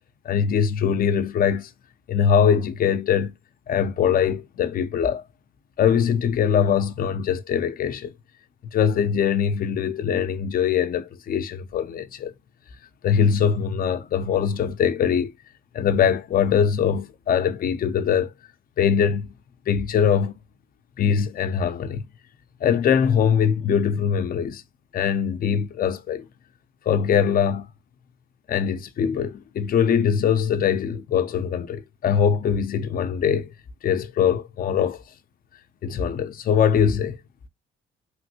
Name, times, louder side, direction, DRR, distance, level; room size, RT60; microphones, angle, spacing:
voice 1, 0.2-1.7 2.1-3.3 3.7-5.2 5.8-8.1 8.7-12.3 13.0-15.3 15.7-18.3 18.8-19.3 19.7-20.3 21.0-22.0 22.6-24.6 24.9-26.3 26.9-27.7 28.5-33.5 33.8-35.0 35.8-37.2, left 7 dB, 45° left, 0.5 m, -22 dB
3.1 x 2.6 x 2.8 m
cardioid pair, 90°, 20 cm